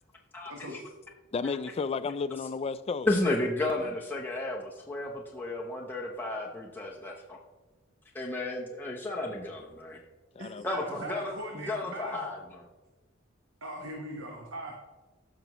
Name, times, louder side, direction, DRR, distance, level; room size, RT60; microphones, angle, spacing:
voice 1, 0.3-0.7 3.1-7.4 8.1-10.0 10.6-12.7, left 2 dB, 10° left, 0.8 m, -33 dB
voice 2, 1.3-3.1 10.4-10.7, left 4 dB, 30° left, 0.3 m, -32 dB
voice 3, 10.4-12.3 13.6-14.7, right 1 dB, 80° right, 1.2 m, -41 dB
14.5 x 6.0 x 3.0 m
head